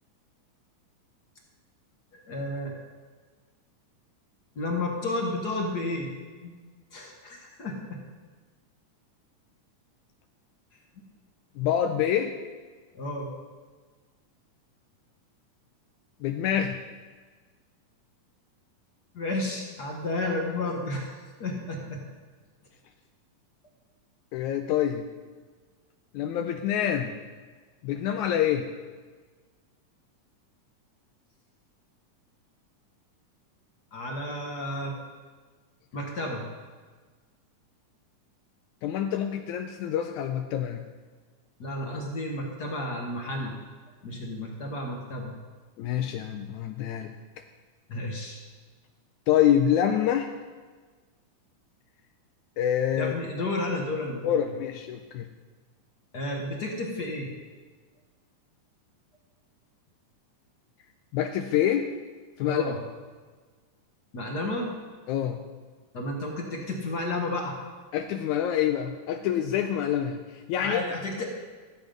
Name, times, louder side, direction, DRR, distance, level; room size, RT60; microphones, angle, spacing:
voice 1, 2.1-2.8 4.5-6.1 6.4-6.5 6.9-8.0 12.9-13.3 19.1-21.1 21.4-22.0 33.9-34.9 35.9-36.4 41.6-43.6 44.0-45.3 47.9-48.4 52.9-54.3 56.1-57.3 62.4-62.8 64.1-64.7 65.9-67.6 70.6-71.3, left 2 dB, 50° left, 0 dB, 1.3 m, -32 dB
voice 2, 11.6-12.3 16.2-16.8 24.3-25.0 26.1-27.2 27.8-28.7 38.8-40.9 45.8-47.1 49.3-50.3 52.6-53.2 54.2-55.3 61.1-61.9 62.4-62.8 65.1-65.4 67.9-70.8, left 10 dB, 80° left, 6 dB, 1.9 m, -26 dB
14.5 x 8.0 x 5.2 m, 1.4 s
omnidirectional pair, 3.6 m